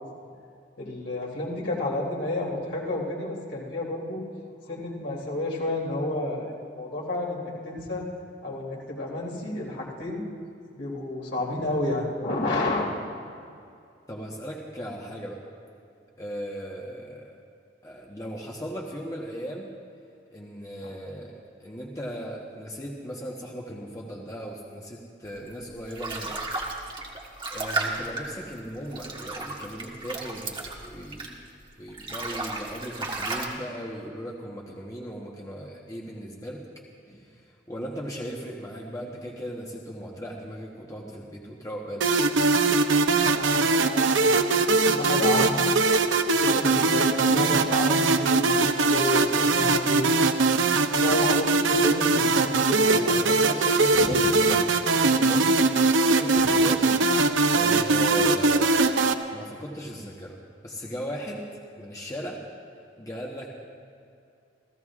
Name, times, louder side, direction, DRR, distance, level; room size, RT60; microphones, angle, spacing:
voice 1, 0.8-4.2 4.7-7.4 7.6-8.0 8.4-10.2 10.7-12.9 20.8-20.9 43.3-45.7 46.4-50.1 51.0-53.4 53.9-54.3, left 1 dB, 70° left, -3 dB, 3.0 m, -30 dB
voice 2, 14.1-15.4 16.2-17.4 17.8-19.7 20.3-26.4 27.2-31.4 31.8-36.6 37.1-42.4 53.1-57.0 57.5-62.4 63.0-63.5, equal, 20° left, -2 dB, 1.1 m, -37 dB
sound 1, 25.5-31.5 31.9-33.4, right 3 dB, 25° right, 1.5 m, -34 dB
sound 2, 42.0-59.1, right 3 dB, 90° right, 0.7 m, -21 dB
29.0 x 15.0 x 2.5 m, 2.4 s
head